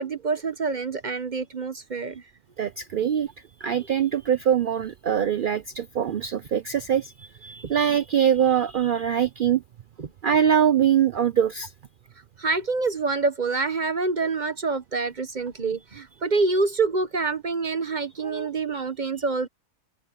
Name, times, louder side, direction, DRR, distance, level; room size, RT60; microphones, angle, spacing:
voice 1, 0.0-2.2 10.0-10.1 12.4-19.5, right 3 dB, 40° right, 0.8 m, -26 dB
voice 2, 2.6-3.3 3.6-9.6 10.2-11.7, right 9 dB, 60° right, 0.5 m, -23 dB
open air
omnidirectional pair, 1.6 m